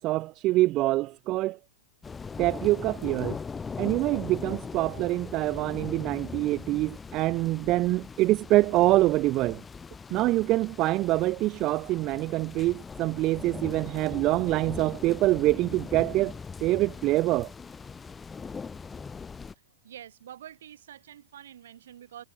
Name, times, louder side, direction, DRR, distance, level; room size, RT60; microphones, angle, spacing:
voice 1, 0.0-1.6 2.4-3.4 3.8-9.6 10.1-16.3 16.6-17.5, right 17 dB, 35° right, 0.5 m, -25 dB
sound 1, 2.0-19.5, left 5 dB, 15° left, 6.6 m, -40 dB
voice 2, 19.8-22.2, right 10 dB, 80° right, 7.7 m, -46 dB
hypercardioid pair, 140°, 0 cm